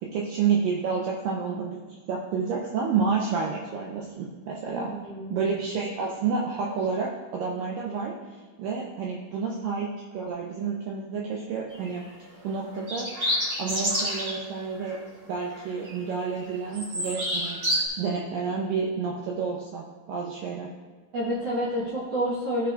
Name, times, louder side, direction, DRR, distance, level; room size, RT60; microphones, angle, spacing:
voice 1, 0.0-4.9 5.3-8.2 8.6-12.0 12.4-13.1 13.6-15.0 15.3-17.6 18.0-20.7, right 5 dB, 80° right, -2 dB, 2.1 m, -29 dB
voice 2, 4.8-5.4 21.1-22.7, equal, 60° right, -7 dB, 1.8 m, -29 dB
sound 1, 11.7-12.0 12.8-14.4 14.8-15.0 15.4-16.1 16.4-17.8, equal, 35° right, 2.1 m, -28 dB
14.5 x 5.9 x 2.4 m, 1.4 s
omnidirectional pair, 4.6 m